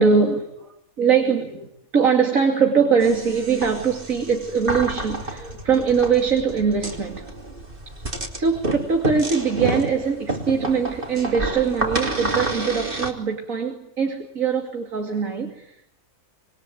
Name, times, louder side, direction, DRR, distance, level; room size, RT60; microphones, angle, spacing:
voice 1, 0.0-0.7 1.0-7.3 8.3-16.0, right 6 dB, 85° right, 3 dB, 3.0 m, -22 dB
sound 1, 3.0-13.1, right 2 dB, 40° right, 3.6 m, -29 dB
26.0 x 23.5 x 9.3 m, 0.75 s
omnidirectional pair, 1.4 m